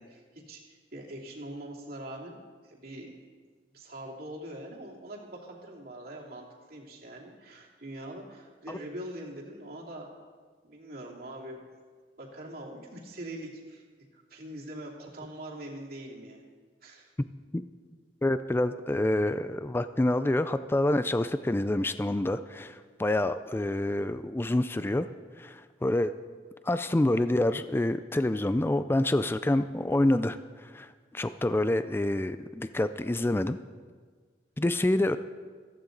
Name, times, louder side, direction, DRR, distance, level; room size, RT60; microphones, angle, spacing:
voice 1, 0.0-2.4 2.6-3.2 3.7-10.2 10.6-11.6 12.2-13.8 14.1-16.4 16.8-17.1 34.8-34.9, right 1 dB, 60° right, -2 dB, 2.7 m, -43 dB
voice 2, 18.2-25.1 25.4-26.1 26.6-33.6 34.6-35.2, left 1 dB, 15° left, 12 dB, 0.3 m, -27 dB
15.5 x 14.5 x 3.9 m, 1.5 s
head